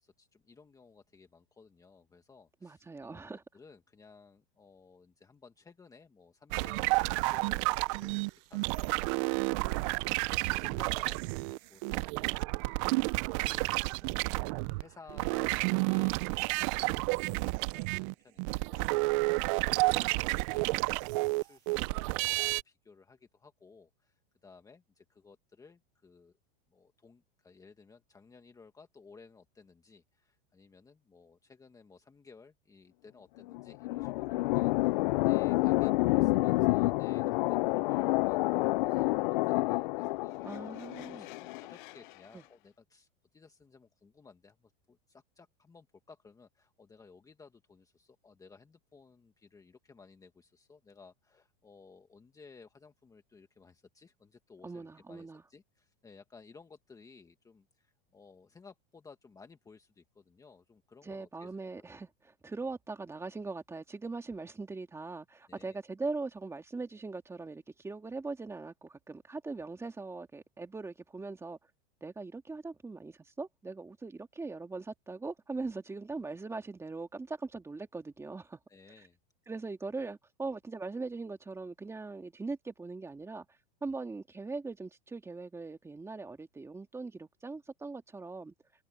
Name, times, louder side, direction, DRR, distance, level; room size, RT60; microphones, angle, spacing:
voice 1, 0.0-26.4 26.7-40.5 40.9-61.7 65.5-65.8 78.7-79.2, left 4 dB, 10° left, 1.6 m, -57 dB
voice 2, 2.6-3.4 40.4-41.3 42.3-42.4 54.6-55.4 61.0-71.6 72.0-78.6 79.5-83.5 83.8-88.5, right 3 dB, 10° right, 2.2 m, -41 dB
sound 1, 6.5-14.8 15.1-22.6, right 25 dB, 35° right, 0.4 m, -30 dB
sound 2, 33.4-41.9, left 21 dB, 50° left, 0.4 m, -29 dB
supercardioid pair, 145°, 31 cm